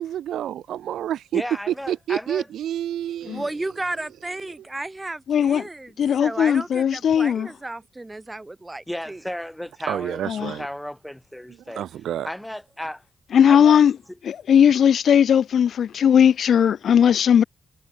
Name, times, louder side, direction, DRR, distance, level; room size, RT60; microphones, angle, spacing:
voice 1, 0.0-1.4 1.7-3.4 9.9-10.7 11.7-12.3, right 11 dB, 85° right, 0.6 m, -28 dB
voice 2, 1.3-2.5 8.9-11.9 12.2-13.0 13.4-13.8, left 1 dB, 5° left, 3.0 m, -34 dB
voice 3, 3.2-9.2, right 2 dB, 15° right, 1.2 m, -33 dB
voice 4, 5.3-5.6 6.0-7.5 10.3-10.5 13.3-13.9 14.2-17.4, left 8 dB, 65° left, 0.7 m, -18 dB
cardioid pair, 85°, 0 cm